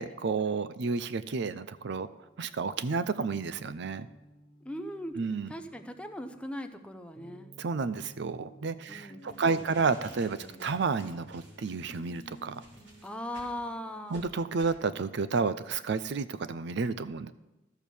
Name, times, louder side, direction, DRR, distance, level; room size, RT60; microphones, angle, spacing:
voice 1, 0.0-2.1 2.4-4.1 5.2-5.5 7.6-12.6 14.1-17.3, right 4 dB, 65° right, 14 dB, 0.5 m, -31 dB
sound 1, 2.0-14.3, equal, 35° left, 1.2 m, -56 dB
voice 2, 4.6-5.2 5.5-7.5 8.9-9.8 10.4-10.7 13.0-14.2, left 1 dB, 5° left, 7 dB, 0.6 m, -40 dB
sound 2, 9.2-13.6 14.1-14.2 14.6-14.8, right 1 dB, 80° right, 3.1 m, -53 dB
13.5 x 4.6 x 6.9 m, 1.0 s
head